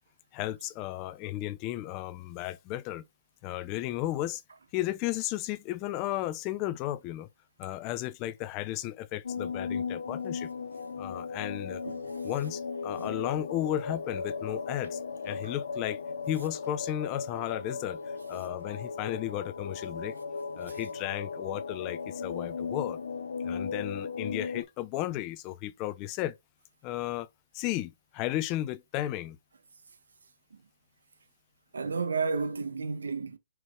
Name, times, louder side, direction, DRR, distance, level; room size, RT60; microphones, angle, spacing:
voice 1, 0.3-3.0 3.4-4.4 4.7-7.3 7.6-10.5 11.0-11.8 12.2-15.0 15.2-16.0 16.3-18.0 18.3-20.2 20.6-23.0 23.4-26.3 26.8-27.3 27.5-29.4, left 14 dB, 25° left, 0.4 m, -34 dB
sound 1, 9.2-24.6, left 5 dB, 75° left, 0.7 m, -36 dB
voice 2, 31.7-33.4, right 4 dB, 85° right, 1.0 m, -32 dB
4.6 x 4.5 x 2.2 m
hypercardioid pair, 150°, 0 cm